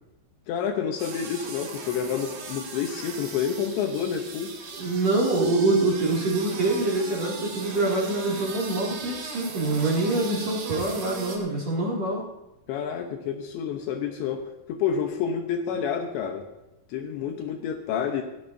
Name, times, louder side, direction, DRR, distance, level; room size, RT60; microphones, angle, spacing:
voice 1, 0.5-4.6 12.7-16.5 16.9-18.2, left 7 dB, 75° left, 4 dB, 3.0 m, -29 dB
sound 1, 1.0-11.4, right 4 dB, 60° right, 4.4 m, -38 dB
voice 2, 4.7-12.2, right 2 dB, 40° right, -3 dB, 3.0 m, -25 dB
18.5 x 16.0 x 2.7 m, 0.95 s
omnidirectional pair, 5.8 m